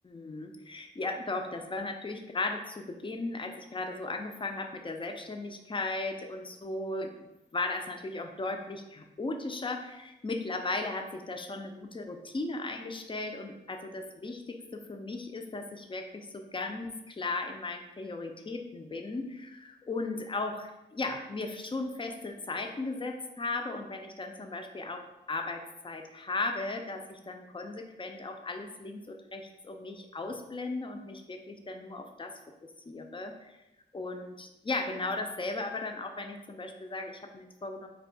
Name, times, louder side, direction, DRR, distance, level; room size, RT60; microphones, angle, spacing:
voice 1, 0.1-32.4 32.9-33.5 33.9-37.9, left 3 dB, 25° left, 5 dB, 0.4 m, -36 dB
2.7 x 2.1 x 2.6 m, 0.93 s
cardioid pair, 45°, 20 cm